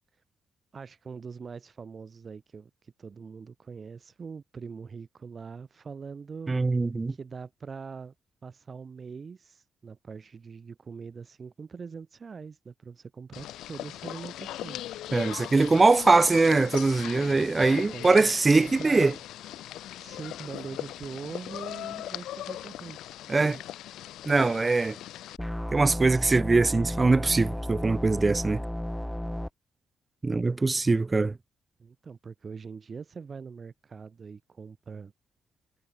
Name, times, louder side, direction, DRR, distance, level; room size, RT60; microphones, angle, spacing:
voice 1, 0.7-6.5 7.1-8.1 8.4-14.8 17.8-19.2 20.0-23.2 31.8-35.1, right 5 dB, 45° right, 7.5 m, -42 dB
voice 2, 6.5-7.1 15.1-19.1 23.3-23.6 24.3-25.0 25.7-28.6 30.2-31.4, right 3 dB, 30° right, 0.9 m, -22 dB
sound 1, 13.3-25.4, left 13 dB, 70° left, 1.8 m, -39 dB
sound 2, 25.4-29.5, left 1 dB, 5° left, 2.7 m, -33 dB
hypercardioid pair, 40°, 0 cm